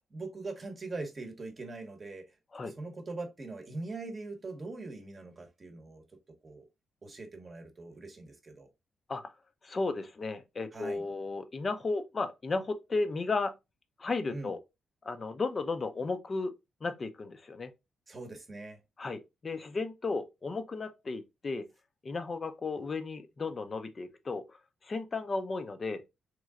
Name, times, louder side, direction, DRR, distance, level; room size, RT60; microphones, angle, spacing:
voice 1, 0.1-2.3 2.6-6.0 6.4-6.6 7.0-8.7 10.7-11.0 14.3-14.5 18.1-18.8, right 3 dB, 25° right, 1.0 m, -42 dB
voice 2, 9.6-13.5 14.0-14.6 15.0-16.5 16.8-17.7 19.0-21.6 22.0-24.6 24.8-26.0, left 3 dB, 30° left, 0.6 m, -34 dB
3.7 x 3.2 x 3.6 m
cardioid pair, 145°, 0 cm